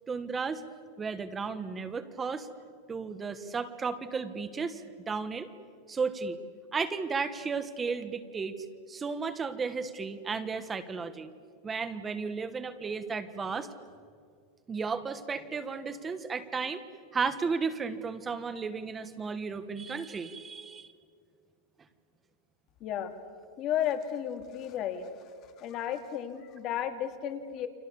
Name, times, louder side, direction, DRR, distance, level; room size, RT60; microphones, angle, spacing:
voice 1, 0.1-0.6 1.0-2.5 2.9-5.5 5.9-6.4 6.7-8.6 8.9-11.3 11.6-13.7 14.7-16.8 17.1-20.9, right 5 dB, 15° right, 11 dB, 1.3 m, -34 dB
voice 2, 22.8-23.1 23.6-25.1 25.6-27.7, left 10 dB, 35° left, 7 dB, 2.2 m, -33 dB
30.0 x 24.5 x 7.1 m, 2.2 s
supercardioid pair, 165°, 0 cm